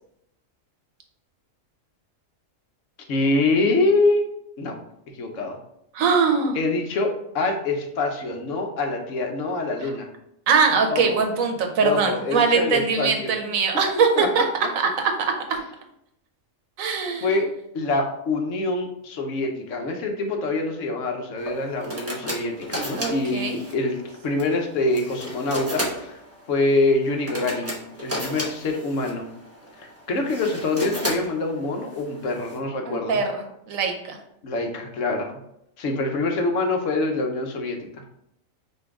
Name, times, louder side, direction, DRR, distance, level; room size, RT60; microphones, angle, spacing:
voice 1, 3.1-4.3 4.6-4.7 5.2-5.6 6.5-10.1 10.9-11.2 11.8-13.4 14.2-14.3 17.2-17.5 17.7-26.2 26.5-29.3 29.8-33.2 34.4-35.3 35.8-38.0, left 2 dB, 70° left, 3 dB, 1.1 m, -25 dB
voice 2, 5.9-6.6 10.5-14.4 14.8-15.6 16.8-17.4 23.0-23.6 32.9-34.2, right 5 dB, 90° right, 4 dB, 1.2 m, -22 dB
sound 1, 21.4-32.6, equal, 15° right, 0.7 m, -34 dB
5.4 x 2.6 x 3.5 m, 0.77 s
omnidirectional pair, 1.4 m